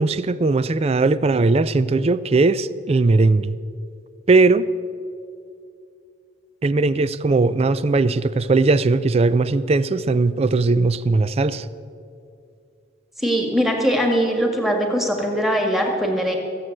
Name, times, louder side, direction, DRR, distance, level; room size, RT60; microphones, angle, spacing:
voice 1, 0.0-3.6 4.3-4.6 6.6-11.7, right 3 dB, 30° right, 0.4 m, -18 dB
voice 2, 13.2-16.4, equal, ahead, 1.7 m, -21 dB
15.5 x 7.6 x 7.9 m
head